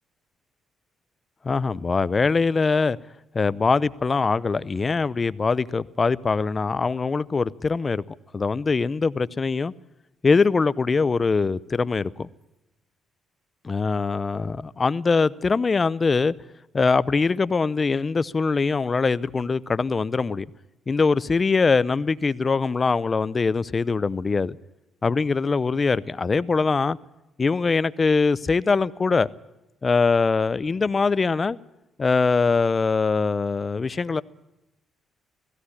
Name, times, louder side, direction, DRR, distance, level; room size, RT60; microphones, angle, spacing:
voice 1, 1.4-3.0 3.3-8.0 8.3-9.7 10.2-12.3 13.6-16.3 16.7-20.5 20.9-24.6 25.0-27.0 27.4-29.3 29.8-31.6 32.0-34.2, left 4 dB, 30° left, 0.7 m, -22 dB
17.0 x 16.0 x 9.8 m
cardioid pair, 90°, 0 cm